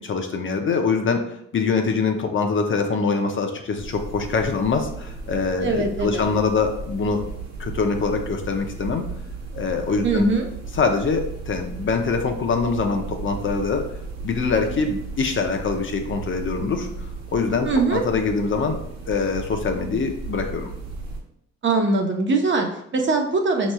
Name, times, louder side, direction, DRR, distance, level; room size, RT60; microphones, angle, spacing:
voice 1, 0.0-7.2 7.6-9.0 9.5-10.3 10.7-13.9 14.2-16.9 17.3-20.7, left 4 dB, 40° left, 5 dB, 0.6 m, -24 dB
sound 1, 3.8-21.2, right 3 dB, 60° right, 1.1 m, -35 dB
voice 2, 5.6-6.3 10.0-10.5 17.6-18.0 21.6-23.7, right 3 dB, 40° right, 3 dB, 0.7 m, -22 dB
5.2 x 3.0 x 2.2 m, 0.72 s
cardioid pair, 90°, 30 cm